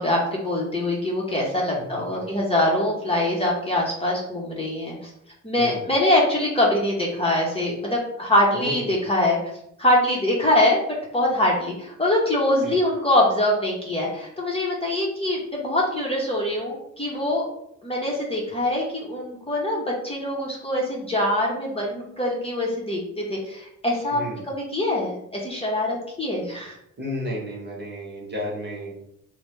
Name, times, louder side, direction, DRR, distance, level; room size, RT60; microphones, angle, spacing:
voice 1, 0.0-5.0 5.4-9.4 9.8-10.8 11.1-17.4 17.8-24.2 24.7-26.8, left 1 dB, 20° left, -3 dB, 0.8 m, -23 dB
voice 2, 5.6-5.9 8.5-8.9 12.6-12.8 24.1-24.4 27.0-29.0, equal, 35° right, -3 dB, 1.1 m, -32 dB
3.2 x 2.2 x 3.1 m, 0.76 s
cardioid pair, 90°, 30 cm